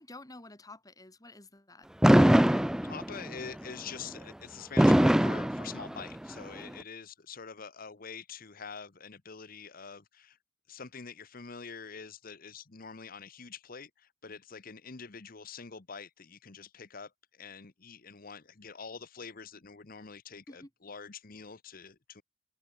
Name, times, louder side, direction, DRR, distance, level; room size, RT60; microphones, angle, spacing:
voice 1, 0.0-1.9 6.6-6.7 20.5-20.7, left 2 dB, 20° left, 2.6 m, -50 dB
Fireworks, 2.0-3.3 4.8-6.3, equal, 5° right, 0.3 m, -22 dB
voice 2, 2.8-10.4 10.7-17.1 17.4-22.2, left 5 dB, 45° left, 1.0 m, -45 dB
head